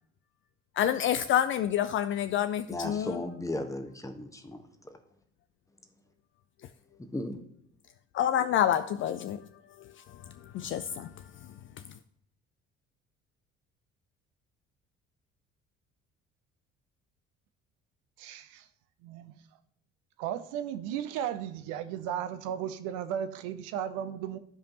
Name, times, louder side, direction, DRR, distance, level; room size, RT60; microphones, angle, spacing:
voice 1, 0.8-3.2 8.1-9.4 9.8-10.2 10.5-11.1, left 10 dB, 35° left, 0.4 m, -28 dB
voice 2, 2.7-4.6 7.1-7.4, left 1 dB, 10° left, 1.1 m, -35 dB
voice 3, 18.2-18.7 19.0-19.3 20.2-24.4, right 10 dB, 55° right, 0.7 m, -35 dB
13.5 x 5.1 x 2.9 m
figure-of-eight pair, 55°, 36 cm